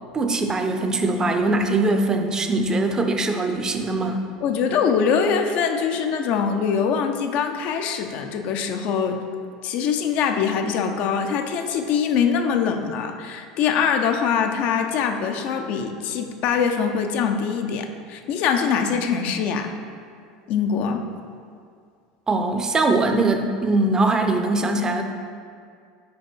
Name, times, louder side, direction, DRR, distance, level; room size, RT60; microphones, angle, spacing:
voice 1, 0.1-4.2 22.3-25.0, right 2 dB, 25° right, 5 dB, 0.6 m, -21 dB
voice 2, 4.4-9.2 9.6-19.7 20.5-21.0, left 6 dB, 55° left, 5 dB, 0.6 m, -23 dB
5.2 x 4.6 x 4.5 m, 2.2 s
hypercardioid pair, 95°, 3 cm